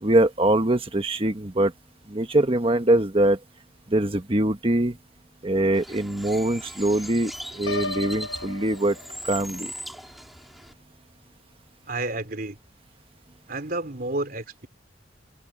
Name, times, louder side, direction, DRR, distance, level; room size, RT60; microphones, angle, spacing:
voice 1, 0.0-1.7 2.1-3.4 3.9-5.0 5.4-8.9 9.3-9.7, right 1 dB, 30° right, 1.4 m, -23 dB
Bird, 5.7-10.7, equal, ahead, 4.4 m, -39 dB
Piano, 7.7-9.6, left 3 dB, 85° left, 1.2 m, -34 dB
voice 2, 11.9-12.6 13.5-14.7, right 2 dB, 50° right, 3.5 m, -30 dB
head